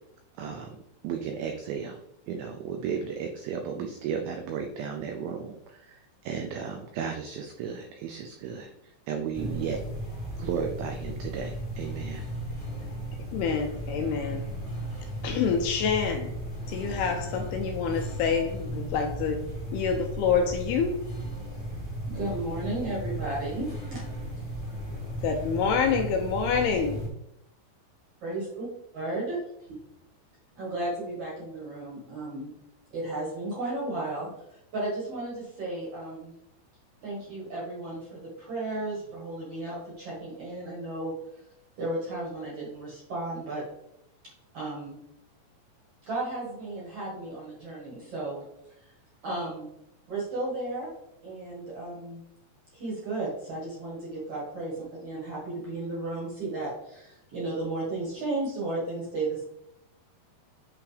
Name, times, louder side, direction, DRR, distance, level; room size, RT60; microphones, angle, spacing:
voice 1, 0.4-0.8 1.0-2.0 2.3-9.8 10.4-12.3, right 7 dB, 90° right, 4 dB, 2.1 m, -34 dB
sound 1, 9.3-27.1, equal, 30° left, 0.9 m, -35 dB
voice 2, 13.3-14.4 15.2-16.3 16.7-19.5 19.7-21.0 25.2-27.1, left 6 dB, 80° left, 4 dB, 2.4 m, -27 dB
voice 3, 22.1-24.0 28.2-28.7 28.9-29.4 30.6-32.5 32.9-36.3 37.0-41.1 41.8-43.6 44.5-45.0 46.1-48.4 49.2-49.7 50.1-50.9 51.2-52.2 52.7-59.4, right 2 dB, 55° right, -5 dB, 1.7 m, -34 dB
8.5 x 3.5 x 3.3 m, 0.81 s
omnidirectional pair, 4.9 m